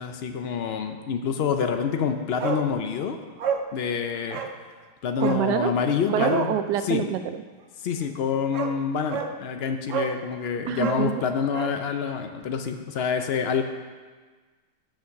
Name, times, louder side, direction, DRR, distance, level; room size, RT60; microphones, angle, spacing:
voice 1, 0.0-3.2 3.7-4.4 5.0-7.0 7.8-13.6, left 6 dB, 85° left, 6 dB, 0.5 m, -27 dB
Bark, 2.4-2.7 3.0-3.1 3.4-3.7 4.3-4.6 5.2-5.5 6.1-6.4 8.0-8.1 8.5-8.8 9.1-9.3 9.9-10.2 10.7-11.8 12.1-12.2, right 6 dB, 60° right, 0.9 m, -30 dB
voice 2, 5.2-5.7 6.1-7.4 10.7-11.2, right 10 dB, 85° right, 9 dB, 1.2 m, -26 dB
8.3 x 6.4 x 6.4 m, 1.4 s
omnidirectional pair, 1.8 m